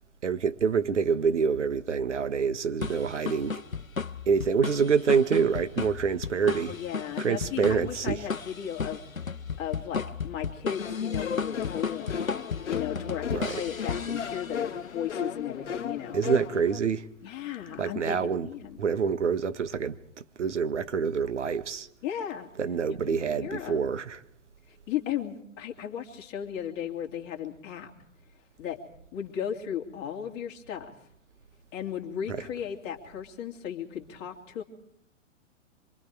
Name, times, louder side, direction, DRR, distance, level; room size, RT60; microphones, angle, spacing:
voice 1, 0.2-3.5 4.3-6.8 7.2-8.3 13.3-13.6 16.1-17.0 17.8-18.5 18.8-21.9 22.6-24.2 32.3-32.4, right 6 dB, 60° right, 1.4 m, -26 dB
sound 1, 2.8-14.8, left 5 dB, 90° left, 0.8 m, -35 dB
voice 2, 6.4-9.0 9.6-12.3 12.7-16.2 17.2-18.8 22.0-22.5 23.1-23.9 24.7-27.9 28.6-28.8 29.1-30.9 31.7-34.6, left 9 dB, 25° left, 2.9 m, -36 dB
sound 2, 10.8-16.8, left 7 dB, 60° left, 0.9 m, -34 dB
26.0 x 24.0 x 4.8 m
figure-of-eight pair, 115°, 40 cm